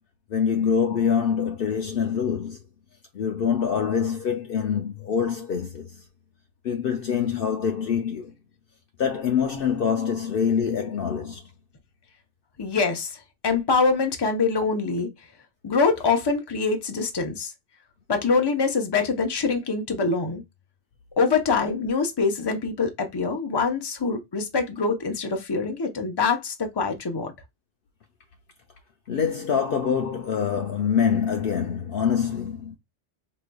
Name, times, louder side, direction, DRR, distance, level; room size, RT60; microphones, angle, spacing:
voice 1, 0.3-2.6 3.1-5.9 6.6-8.3 9.0-11.4 29.1-32.8, left 7 dB, 65° left, 0.7 m, -25 dB
voice 2, 12.6-13.2 13.4-15.1 15.6-17.5 18.1-20.4 21.2-27.3, left 4 dB, 25° left, 0.6 m, -24 dB
4.9 x 3.0 x 2.2 m
omnidirectional pair, 1.2 m